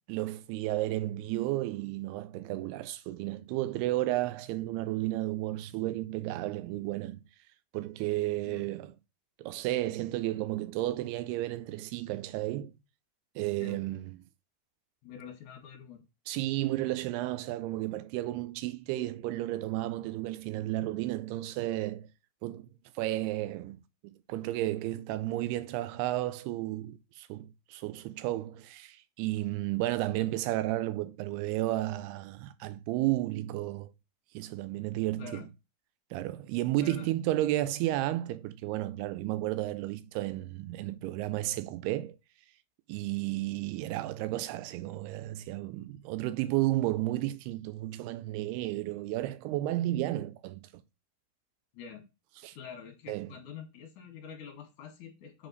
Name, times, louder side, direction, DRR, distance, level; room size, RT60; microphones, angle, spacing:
voice 1, 0.1-7.2 7.7-8.9 9.4-12.7 13.4-14.2 16.3-22.1 22.4-22.7 23.0-23.8 24.0-33.9 34.3-35.3 36.1-42.2 42.9-50.7 52.4-52.6 53.1-53.3, right 16 dB, 90° right, 2.6 m, -32 dB
voice 2, 15.0-16.0 35.2-35.5 36.8-37.1 51.7-52.0 52.5-55.5, left 7 dB, 65° left, 2.4 m, -46 dB
7.8 x 4.0 x 4.0 m
omnidirectional pair, 4.6 m